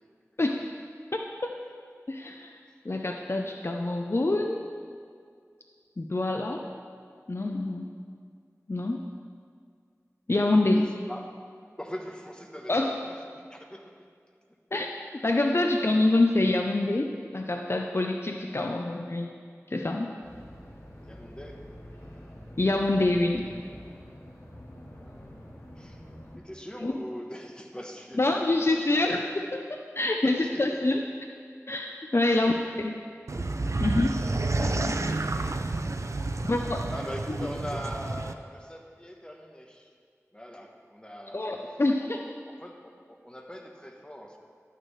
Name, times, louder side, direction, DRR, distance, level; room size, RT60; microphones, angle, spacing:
voice 1, 1.1-1.5 2.1-2.5 2.8-4.6 6.0-6.6 7.3-7.9 8.7-9.0 10.3-10.9 12.7-13.0 14.7-14.9 15.2-19.3 19.7-20.1 22.6-23.4 26.8-26.9 28.2-31.0 31.7-32.5 32.8-32.9 33.8-34.3 34.6-34.9 36.4-36.9 41.3-42.2, left 2 dB, 50° left, 3 dB, 0.5 m, -26 dB
voice 2, 10.8-11.4 11.8-14.0 15.2-15.3 21.0-21.6 24.9-25.4 25.8-26.0 26.3-28.4 30.2-30.7 32.3-32.5 36.9-39.9 40.3-42.2 42.5-44.4, equal, 15° left, 1 dB, 1.1 m, -42 dB
sound 1, 20.2-26.4, equal, 75° left, 2.0 m, -46 dB
sound 2, 33.3-38.3, right 2 dB, 65° right, 0.4 m, -30 dB
12.0 x 9.1 x 3.2 m, 2.2 s
wide cardioid pair, 45°, 5 cm